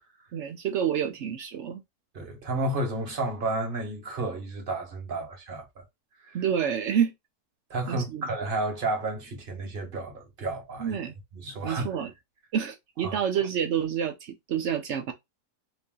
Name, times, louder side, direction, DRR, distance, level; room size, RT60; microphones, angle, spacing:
voice 1, 0.3-1.8 6.3-7.1 7.9-8.2 10.8-11.1 11.6-12.1 12.5-15.1, right 8 dB, 70° right, 0.6 m, -28 dB
voice 2, 2.1-5.8 6.3-6.4 7.7-11.0 11.3-11.9 13.0-13.2, right 2 dB, 40° right, 1.1 m, -31 dB
3.1 x 2.7 x 3.6 m
omnidirectional pair, 1.7 m